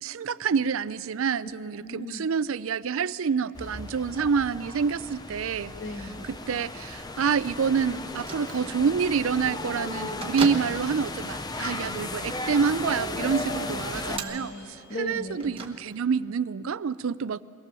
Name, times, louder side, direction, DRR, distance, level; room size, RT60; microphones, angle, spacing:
voice 1, 0.0-5.7 6.5-14.5 15.0-17.4, right 6 dB, 70° right, 0.4 m, -27 dB
voice 2, 1.8-2.3 5.7-6.3 13.2-15.6, left 1 dB, 60° left, 1.5 m, -37 dB
sound 1, 3.5-14.2, left 2 dB, 20° left, 0.6 m, -36 dB
Bell / Microwave oven, 8.1-16.3, right 3 dB, 25° right, 1.2 m, -41 dB
22.5 x 18.0 x 6.8 m
head